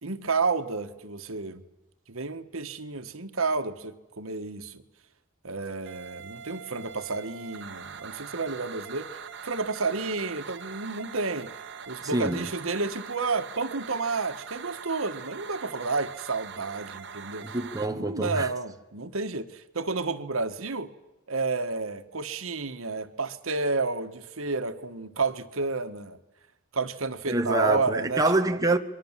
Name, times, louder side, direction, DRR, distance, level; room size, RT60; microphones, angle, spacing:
voice 1, 0.0-1.6 2.1-4.8 5.4-11.5 11.9-17.5 17.9-20.9 21.3-26.2 26.7-28.2, right 3 dB, 80° right, 1.5 m, -31 dB
sound 1, 5.9-17.9, right 6 dB, 55° right, 1.7 m, -42 dB
voice 2, 12.1-12.5 17.5-18.5 27.3-28.8, right 2 dB, 15° right, 1.0 m, -25 dB
29.0 x 23.5 x 7.5 m
head